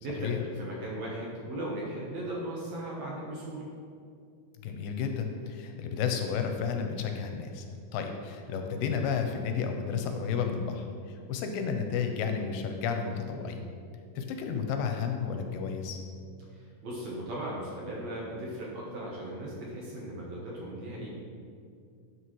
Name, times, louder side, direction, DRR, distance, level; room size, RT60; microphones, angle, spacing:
voice 1, 0.0-3.6 16.5-21.1, right 1 dB, 65° right, -4 dB, 1.9 m, -37 dB
voice 2, 4.6-7.7 7.9-13.6 14.2-16.0, left 6 dB, 85° left, 5 dB, 2.3 m, -32 dB
11.0 x 6.3 x 3.1 m, 2.3 s
omnidirectional pair, 4.1 m